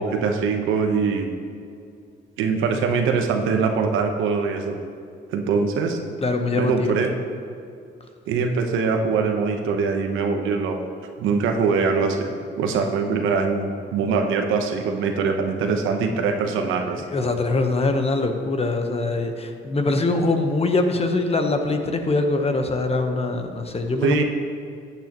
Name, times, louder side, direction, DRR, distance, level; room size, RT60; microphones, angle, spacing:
voice 1, 0.0-1.3 2.4-4.7 5.3-6.0 6.5-7.1 8.3-10.8 11.2-17.0 24.0-24.2, right 5 dB, 90° right, 4 dB, 1.0 m, -23 dB
voice 2, 6.2-7.0 17.1-24.2, left 3 dB, 30° left, 6 dB, 1.0 m, -23 dB
13.5 x 8.9 x 3.0 m, 2.4 s
cardioid pair, 90°, 20 cm